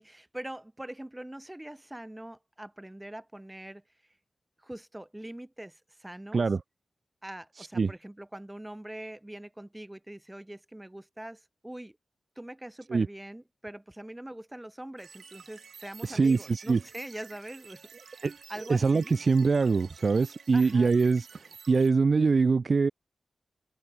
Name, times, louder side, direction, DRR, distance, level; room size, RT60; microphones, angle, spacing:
voice 1, 0.0-3.8 4.6-6.4 7.2-12.0 12.4-19.2 20.5-20.9, right 1 dB, 10° right, 4.5 m, -43 dB
voice 2, 7.6-7.9 12.9-13.1 16.0-16.8 18.2-18.4 18.7-22.9, right 4 dB, 45° right, 0.5 m, -24 dB
sound 1, 15.0-21.9, right 6 dB, 70° right, 4.4 m, -51 dB
wide cardioid pair, 160°, 0 cm